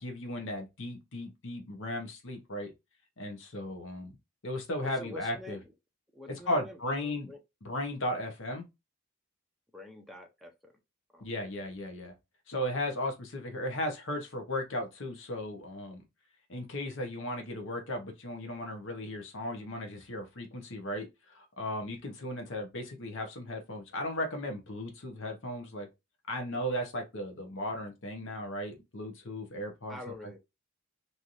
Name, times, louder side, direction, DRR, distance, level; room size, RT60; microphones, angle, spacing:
voice 1, 0.0-2.7 3.2-4.1 4.4-5.6 6.3-7.3 7.6-8.7 11.2-12.1 12.5-16.1 16.5-25.9 26.3-30.4, left 1 dB, 65° left, 0.9 m, -36 dB
voice 2, 4.8-5.7 6.1-7.4 9.7-10.7 11.1-11.3 29.9-30.4, left 2 dB, ahead, 0.5 m, -46 dB
3.2 x 2.7 x 2.5 m
head